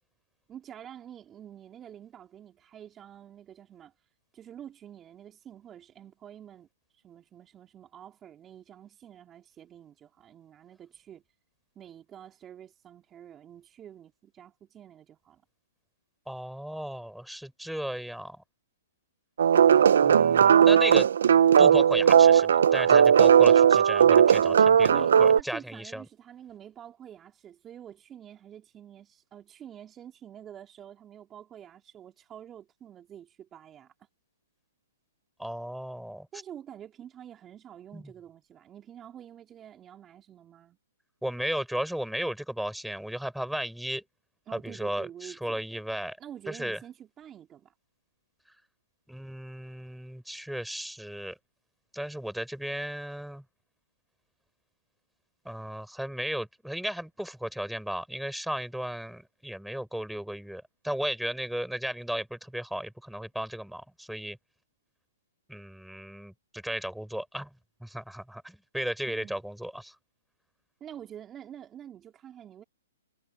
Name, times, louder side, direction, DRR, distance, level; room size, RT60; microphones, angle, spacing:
voice 1, 0.5-3.9 4.3-11.2 11.8-15.4 24.9-33.9 36.3-40.8 44.5-45.6 46.2-47.7 69.1-69.4 70.8-72.6, right 10 dB, 20° right, 3.6 m, -47 dB
voice 2, 16.3-18.4 20.0-21.1 21.6-26.0 35.4-36.3 37.9-38.0 41.2-44.0 44.5-46.2 46.5-46.8 49.1-51.4 51.9-53.4 55.4-64.4 65.5-67.5 67.8-69.9, equal, ahead, 4.9 m, -35 dB
sound 1, 19.4-25.4, right 8 dB, 70° right, 0.7 m, -18 dB
hypercardioid pair, 135°, 0 cm